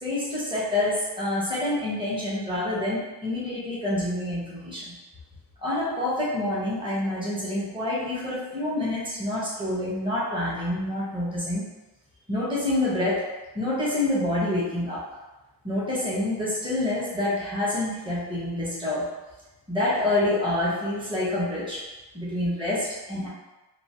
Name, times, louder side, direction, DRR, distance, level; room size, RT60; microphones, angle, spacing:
voice 1, 0.0-4.9 5.6-11.7 12.3-15.2 15.6-19.1 19.7-21.9 22.1-23.3, left 1 dB, 10° right, -7 dB, 0.9 m, -27 dB
3.1 x 2.3 x 2.7 m, 1.1 s
wide cardioid pair, 55°, 41 cm